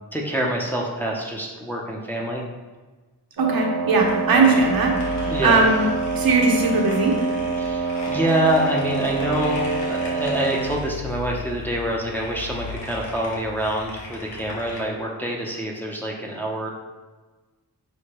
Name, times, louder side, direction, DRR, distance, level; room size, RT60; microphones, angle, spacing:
voice 1, 0.1-2.4 4.3-4.5 5.2-5.6 7.6-16.7, right 1 dB, 5° left, -2 dB, 0.6 m, -26 dB
voice 2, 3.4-4.9 5.4-5.8 6.1-7.2, right 3 dB, 60° right, 0 dB, 0.8 m, -19 dB
Wind instrument woodwind instrument, 3.4-10.8, right 5 dB, 75° right, 1.1 m, -26 dB
sound 1, 4.0-14.8, left 4 dB, 85° left, 1.0 m, -37 dB
6.3 x 2.2 x 3.0 m, 1.3 s
cardioid pair, 75°, 41 cm